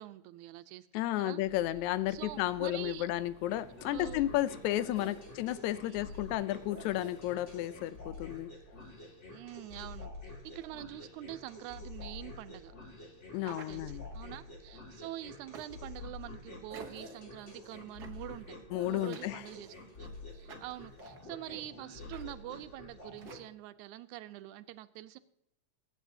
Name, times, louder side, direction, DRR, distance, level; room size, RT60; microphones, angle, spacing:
voice 1, 0.0-0.9 1.2-1.4 2.1-3.1 3.9-4.2 5.0-5.2 5.8-6.3 9.3-12.7 13.4-18.6 18.8-20.1 20.3-25.2, right 14 dB, 90° right, 12 dB, 2.0 m, -46 dB
voice 2, 0.9-8.5 13.3-14.0 18.7-19.4, left 14 dB, 80° left, 16 dB, 1.9 m, -33 dB
sound 1, 1.4-7.9, right 1 dB, 55° left, 5.2 m, -57 dB
sound 2, 3.5-23.4, left 2 dB, 25° left, 2.1 m, -48 dB
sound 3, 13.4-14.3 15.5-16.0 16.7-17.2 18.0-18.4 19.1-19.9 20.5-21.2 22.1-22.3 22.5-22.7 23.2-23.5, right 6 dB, 60° right, 1.0 m, -51 dB
22.5 x 8.5 x 2.7 m, 0.79 s
omnidirectional pair, 3.3 m